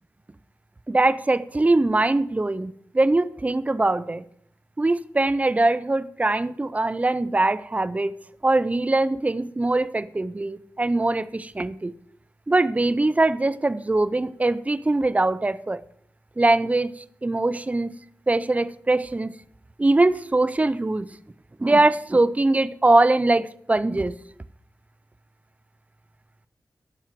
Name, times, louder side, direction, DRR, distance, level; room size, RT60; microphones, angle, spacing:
voice 1, 0.9-4.2 4.8-8.1 8.4-11.9 12.5-15.8 16.4-18.0 18.3-19.3 19.8-21.1 21.6-24.1, right 2 dB, 20° right, 0.5 m, -22 dB
11.5 x 4.5 x 7.6 m
wide cardioid pair, 75°, 6 cm